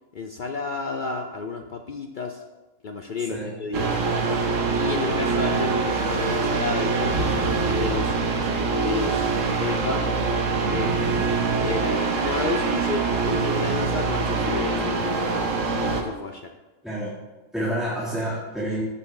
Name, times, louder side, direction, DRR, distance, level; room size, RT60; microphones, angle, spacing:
voice 1, 0.1-2.4 2.8-4.0 4.7-10.0 10.7-11.2 11.5-15.5 16.0-16.5, left 4 dB, 70° left, 4 dB, 0.4 m, -31 dB
sound 1, 3.7-16.0, right 4 dB, 65° right, 1.3 m, -24 dB
voice 2, 11.1-11.7 16.8-17.2 17.5-18.8, right 1 dB, ahead, -7 dB, 1.3 m, -29 dB
14.5 x 5.4 x 3.2 m, 1.1 s
omnidirectional pair, 1.5 m